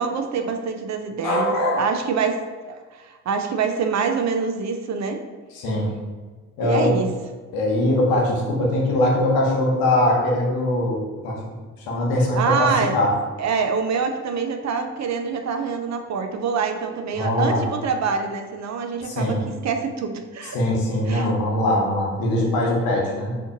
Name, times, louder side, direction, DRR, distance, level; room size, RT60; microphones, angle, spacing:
voice 1, 0.0-2.4 2.7-5.2 6.6-7.1 12.4-13.0 13.4-20.6 21.1-21.3, right 5 dB, 50° right, 5 dB, 0.5 m, -25 dB
voice 2, 1.2-1.8 5.5-5.9 6.6-6.9 7.5-11.4 11.8-13.1 17.2-17.6 19.0-19.4 20.5-23.3, left 1 dB, 85° left, -2 dB, 0.8 m, -21 dB
2.6 x 2.5 x 3.8 m, 1.4 s
supercardioid pair, 50°, 35 cm